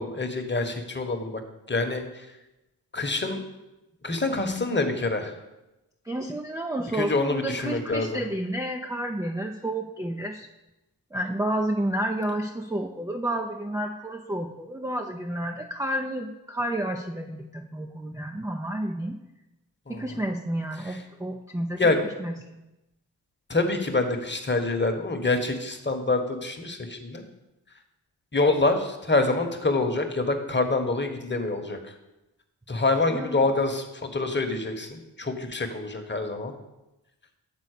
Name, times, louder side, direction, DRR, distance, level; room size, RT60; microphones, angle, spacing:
voice 1, 0.0-1.4 1.7-2.0 2.9-3.4 4.0-5.3 6.9-8.2 19.9-20.0 20.8-21.0 21.8-22.0 23.5-27.2 28.3-31.8 32.7-36.5, left 3 dB, 25° left, 6 dB, 1.2 m, -26 dB
voice 2, 6.1-10.5 11.1-19.2 19.9-21.9 22.2-22.6 33.1-33.4, right 1 dB, 5° right, 3 dB, 0.5 m, -30 dB
7.9 x 4.1 x 6.5 m, 0.98 s
supercardioid pair, 45°, 44 cm